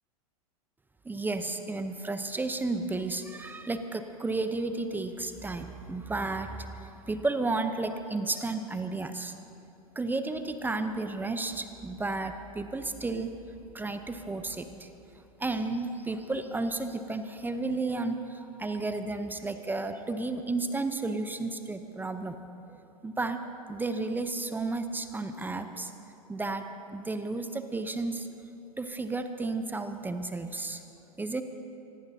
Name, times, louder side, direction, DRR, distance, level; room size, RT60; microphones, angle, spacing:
voice 1, 1.0-9.3 10.0-13.3 13.7-14.9 15.4-22.4 22.7-22.8 23.0-23.4 23.7-25.9 26.3-28.3 28.8-30.8 31.2-31.4, right 3 dB, 10° right, 8 dB, 0.8 m, -32 dB
25.0 x 19.5 x 2.8 m, 2.7 s
figure-of-eight pair, 95°, 20 cm